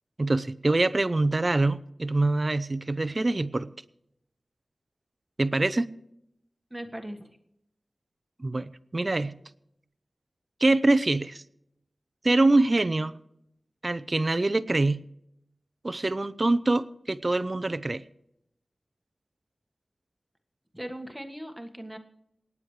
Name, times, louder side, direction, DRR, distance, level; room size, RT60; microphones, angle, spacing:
voice 1, 0.2-3.7 5.4-5.9 8.4-9.4 10.6-11.4 12.2-13.1 13.8-15.0 15.8-18.0, right 2 dB, 35° right, 15 dB, 0.6 m, -24 dB
voice 2, 6.7-7.3 20.7-22.0, right 1 dB, 5° right, 5 dB, 1.6 m, -39 dB
27.5 x 9.6 x 3.2 m, 0.79 s
wide cardioid pair, 95°, 0 cm